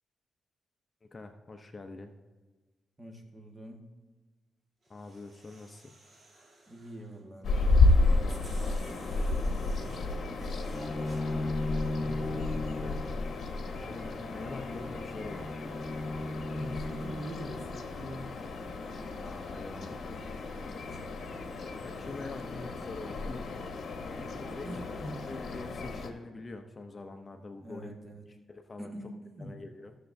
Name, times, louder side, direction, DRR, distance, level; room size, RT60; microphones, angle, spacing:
voice 1, 1.1-2.1 4.9-5.9 12.0-13.1 13.7-15.5 19.2-20.2 21.8-23.5 24.3-24.8 25.3-28.0 28.5-28.9 29.4-30.0, left 3 dB, 35° left, 6 dB, 0.6 m, -44 dB
voice 2, 3.0-3.9 6.7-10.3 16.5-18.3 20.7-21.0 22.4-22.5 24.1-25.2 27.6-28.2 28.8-29.5, right 1 dB, 25° right, 2 dB, 1.5 m, -45 dB
sound 1, 4.8-7.2 7.9-8.0 8.3-11.2, right 2 dB, 40° right, 2.0 m, -53 dB
sound 2, 7.4-26.1, left 3 dB, 65° left, 0.9 m, -32 dB
Bowed string instrument, 10.7-17.8, left 2 dB, ahead, 1.6 m, -37 dB
15.5 x 6.7 x 2.6 m, 1.3 s
cardioid pair, 90°, 0 cm